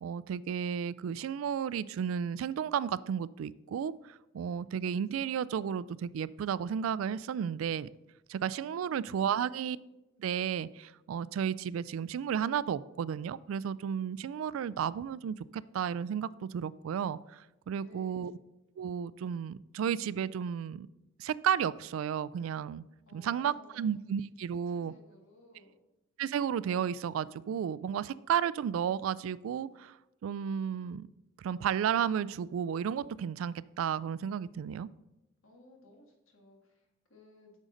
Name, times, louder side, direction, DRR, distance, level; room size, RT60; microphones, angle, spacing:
voice 1, 0.0-7.9 8.3-9.8 10.2-18.3 18.8-20.9 21.2-22.8 23.1-24.9 26.2-30.0 30.2-31.1 31.4-34.9, right 8 dB, 85° right, 17 dB, 0.3 m, -33 dB
voice 2, 8.8-9.7 17.7-18.4 23.1-23.9 24.5-25.8 35.4-37.6, left 1 dB, 90° left, 2 dB, 1.8 m, -59 dB
8.9 x 6.4 x 3.8 m, 0.96 s
head